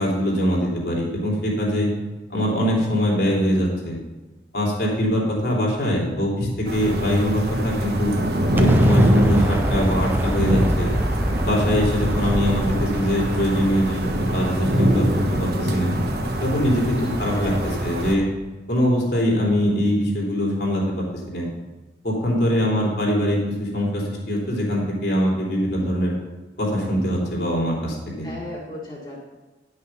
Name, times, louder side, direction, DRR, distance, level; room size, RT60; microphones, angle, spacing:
voice 1, 0.0-1.9 2.3-4.0 4.5-8.1 8.5-10.9 11.4-15.1 15.3-15.9 16.4-18.3 18.7-21.5 22.0-26.1 26.6-28.3, equal, 70° left, -3 dB, 3.0 m, -22 dB
sound 1, 6.7-18.2, right 1 dB, 60° right, 1.3 m, -23 dB
Explosion, 8.6-14.6, equal, 10° right, 0.5 m, -26 dB
voice 2, 17.0-17.8 28.2-29.2, left 1 dB, 25° left, -5 dB, 1.7 m, -36 dB
10.5 x 6.5 x 5.6 m, 1.2 s
head